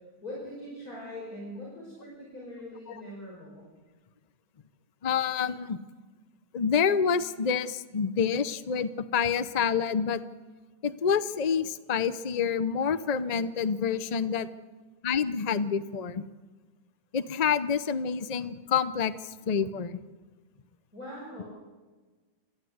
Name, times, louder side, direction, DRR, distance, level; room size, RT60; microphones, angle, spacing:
voice 1, 0.2-3.6 20.9-21.4, left 1 dB, 55° left, -4 dB, 6.1 m, -42 dB
voice 2, 5.0-5.8 6.5-10.2 10.8-14.5 15.0-16.2 17.1-20.0, left 7 dB, 75° left, 13 dB, 0.3 m, -28 dB
28.0 x 14.5 x 7.9 m, 1.3 s
omnidirectional pair, 1.9 m